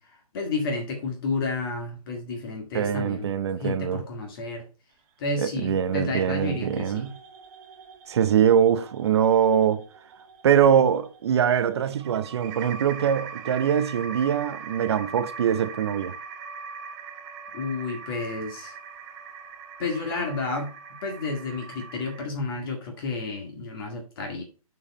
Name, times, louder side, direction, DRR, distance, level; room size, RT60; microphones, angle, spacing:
voice 1, 0.3-3.3 3.6-4.7 5.2-7.1 17.5-18.8 19.8-20.7 21.0-24.4, left 3 dB, 40° left, 1.9 m, -31 dB
voice 2, 2.7-4.0 5.4-7.1 8.1-9.8 10.4-16.1, right 8 dB, 45° right, 0.7 m, -23 dB
sound 1, 6.0-22.3, right 5 dB, 30° right, 1.3 m, -42 dB
7.4 x 4.8 x 5.6 m
figure-of-eight pair, 140°, 19 cm